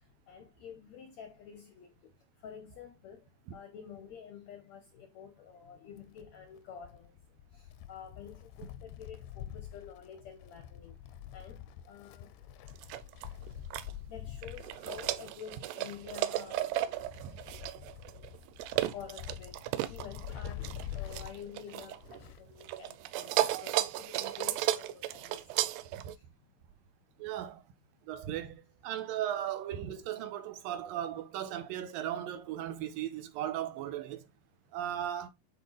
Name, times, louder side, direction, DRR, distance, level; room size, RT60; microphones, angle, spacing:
voice 1, 0.3-2.1 2.4-7.2 7.5-11.0 11.3-12.3 14.1-17.0 18.8-25.4, left 8 dB, 70° left, 1.7 m, -49 dB
Wind, 6.0-22.6 22.9-23.0 24.0-24.1, left 11 dB, 85° left, 2.8 m, -46 dB
sound 1, 12.7-13.9 14.4-22.3 22.6-26.2, right 14 dB, 90° right, 2.8 m, -34 dB
voice 2, 27.2-27.6 28.1-34.2 34.7-35.3, right 11 dB, 75° right, 2.4 m, -37 dB
10.0 x 4.5 x 3.2 m
omnidirectional pair, 4.7 m